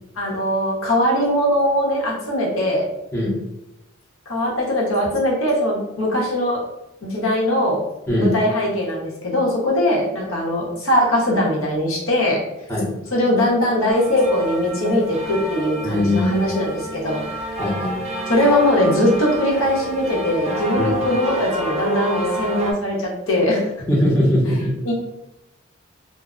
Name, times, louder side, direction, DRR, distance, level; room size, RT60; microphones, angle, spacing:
voice 1, 0.2-2.8 4.3-6.6 7.0-7.8 8.2-12.4 13.1-17.2 18.3-23.6 24.8-24.9, left 1 dB, 85° left, -3 dB, 0.8 m, -20 dB
sound 1, 13.9-22.7, right 1 dB, 30° right, 0.4 m, -28 dB
voice 2, 15.8-16.6 17.6-18.0 20.8-20.9 23.9-24.7, left 1 dB, 10° left, -6 dB, 0.6 m, -20 dB
2.1 x 2.0 x 3.6 m, 0.93 s
head